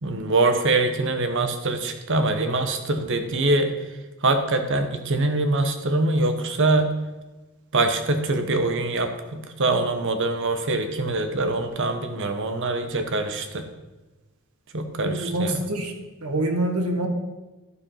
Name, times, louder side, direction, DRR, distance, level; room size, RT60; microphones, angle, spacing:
voice 1, 0.0-3.9 4.2-6.9 7.7-13.7 14.7-15.6, right 2 dB, 55° right, 7 dB, 1.1 m, -24 dB
voice 2, 15.0-15.9 16.2-17.1, right 1 dB, 80° right, 4 dB, 1.4 m, -25 dB
12.0 x 4.9 x 5.7 m, 1.1 s
head